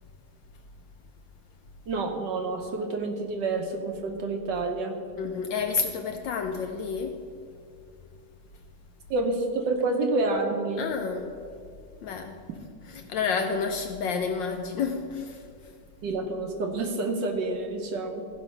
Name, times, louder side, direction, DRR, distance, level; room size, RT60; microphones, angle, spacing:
voice 1, 1.9-5.0 9.1-10.9 16.0-18.3, right 3 dB, 65° right, 1.3 m, -28 dB
voice 2, 5.2-7.2 10.8-11.3 12.0-12.4 12.8-15.4, left 5 dB, 75° left, 1.1 m, -30 dB
14.5 x 5.5 x 5.5 m
omnidirectional pair, 2.4 m